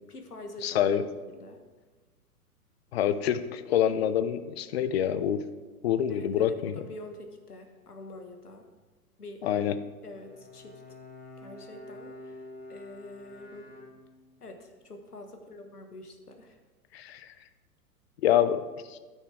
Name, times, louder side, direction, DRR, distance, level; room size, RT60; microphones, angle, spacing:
voice 1, 0.1-0.9 1.3-1.6 6.1-8.7 9.2-9.5 10.0-10.8 11.4-13.7 14.4-16.6, left 2 dB, 85° left, 5 dB, 1.4 m, -46 dB
voice 2, 0.6-1.0 2.9-5.5 5.8-6.8 9.4-9.7 16.9-17.3 18.2-18.6 18.9-19.0, left 10 dB, 45° left, 12 dB, 0.6 m, -26 dB
Bowed string instrument, 10.1-14.5, left 2 dB, 20° left, 1.1 m, -47 dB
14.0 x 6.4 x 3.4 m, 1.3 s
figure-of-eight pair, 105°, 45 cm